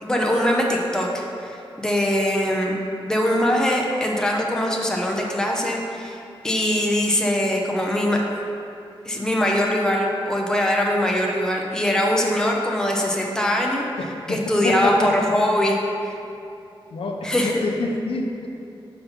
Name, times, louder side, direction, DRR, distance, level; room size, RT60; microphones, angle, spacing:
voice 1, 0.0-2.7 3.1-8.2 9.0-13.8 14.3-16.1 17.2-17.6, left 1 dB, 5° left, -1 dB, 0.7 m, -22 dB
voice 2, 14.3-15.1 16.9-18.5, left 3 dB, 75° left, 2 dB, 0.7 m, -27 dB
5.7 x 5.4 x 5.6 m, 2.7 s
wide cardioid pair, 155°, 10 cm